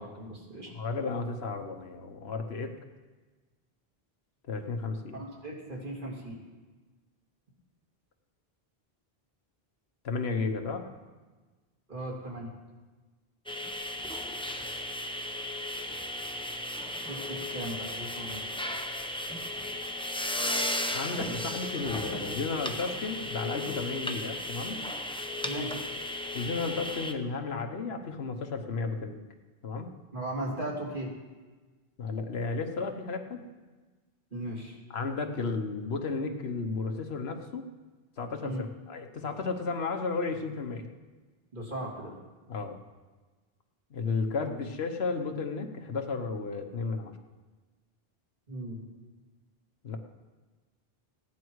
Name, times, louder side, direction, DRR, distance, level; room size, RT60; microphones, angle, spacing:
voice 1, 0.0-0.7 5.1-6.4 11.9-12.5 17.1-18.4 25.4-25.8 30.1-31.1 34.3-34.7 38.4-38.6 41.5-42.1 44.4-44.5 48.5-48.8, right 1 dB, 55° right, -3 dB, 3.1 m, -37 dB
voice 2, 0.7-2.7 4.5-5.2 10.0-10.9 20.9-24.8 26.3-29.2 29.6-29.9 32.0-33.5 34.9-37.6 38.2-40.9 42.5-42.8 43.9-47.1 49.8-50.0, left 4 dB, 80° left, 6 dB, 1.3 m, -33 dB
sound 1, 13.5-27.1, left 1 dB, 5° left, 0.7 m, -35 dB
16.5 x 10.0 x 4.7 m, 1.3 s
omnidirectional pair, 1.0 m